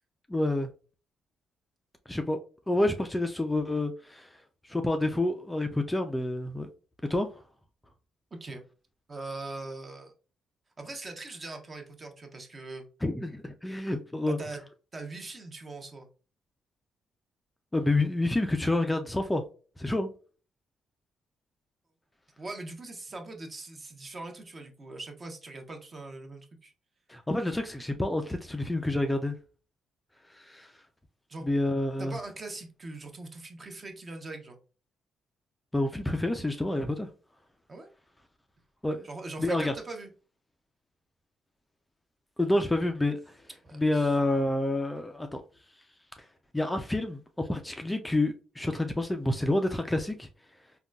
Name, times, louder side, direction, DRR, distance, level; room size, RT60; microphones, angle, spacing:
voice 1, 0.3-0.7 2.1-2.4 2.7-6.7 7.1-7.4 13.0-14.4 17.7-19.4 19.8-20.1 27.1-29.4 30.3-30.7 31.4-32.2 35.7-37.1 38.8-39.1 39.4-39.7 42.4-43.4 43.7-45.4 46.2-46.3 46.5-50.3, left 2 dB, 10° left, 0.3 m, -28 dB
voice 2, 8.3-8.7 9.1-10.1 10.8-12.9 14.2-14.6 14.9-16.1 22.4-26.7 31.3-31.5 32.0-34.6 37.7-37.9 39.0-40.1 43.6-44.1, right 2 dB, 35° right, 0.7 m, -41 dB
3.7 x 2.2 x 2.2 m
cardioid pair, 90°, 0 cm